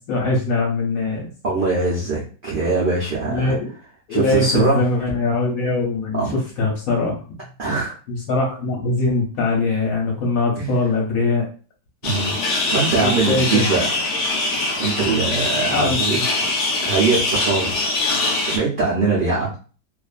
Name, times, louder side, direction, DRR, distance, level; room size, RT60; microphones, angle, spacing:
voice 1, 0.0-1.3 3.3-3.7 4.1-6.2 6.6-7.1 8.1-11.4 13.0-13.7 15.7-16.2, left 3 dB, 65° left, -1 dB, 1.0 m, -22 dB
voice 2, 1.4-3.6 4.1-4.8 6.2-6.4 7.6-8.0 10.6-10.7 12.0-12.4 12.7-13.9 14.8-16.2 16.8-19.6, right 4 dB, 65° right, -6 dB, 0.5 m, -22 dB
sound 1, 12.0-18.6, left 2 dB, 85° left, 0.6 m, -23 dB
2.6 x 2.4 x 2.3 m, 0.38 s
omnidirectional pair, 1.9 m